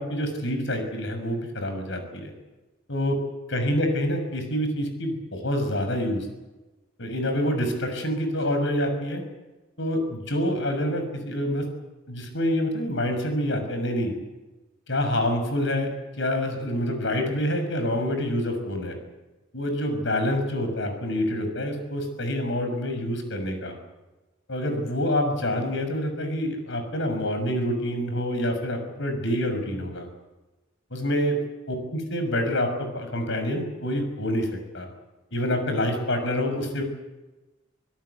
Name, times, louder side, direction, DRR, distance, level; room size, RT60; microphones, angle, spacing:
voice 1, 0.0-2.3 2.9-3.2 3.5-6.3 7.0-9.2 9.8-11.6 12.1-14.1 14.9-15.9 16.2-19.0 19.5-23.8 24.5-30.1 30.9-31.4 31.7-34.5 34.7-34.9 35.3-36.8, left 1 dB, 65° left, 6 dB, 6.5 m, -27 dB
26.5 x 17.5 x 8.3 m, 1.1 s
head